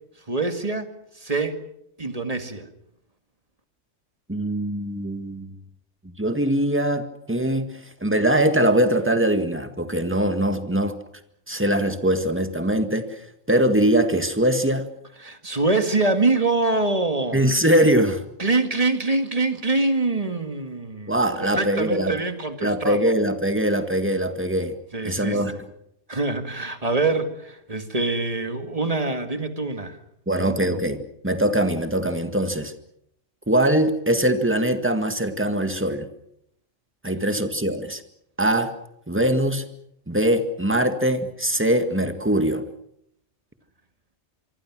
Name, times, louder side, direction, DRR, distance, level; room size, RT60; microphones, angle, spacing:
voice 1, 0.3-0.9 1.2-1.6 2.0-2.7 15.2-17.4 18.4-21.2 21.4-23.1 24.9-25.4 26.1-30.0 30.3-30.8, right 3 dB, 30° right, 7 dB, 2.1 m, -24 dB
voice 2, 4.3-5.6 6.2-7.7 8.0-11.0 11.5-13.1 13.5-14.9 17.3-18.2 21.1-22.2 22.6-24.7 25.0-25.5 30.3-32.7 33.5-36.1 37.0-38.0 38.4-38.7 39.1-39.6 40.1-42.6, right 1 dB, 10° right, 8 dB, 1.8 m, -22 dB
25.5 x 24.5 x 6.2 m, 0.75 s
omnidirectional pair, 1.3 m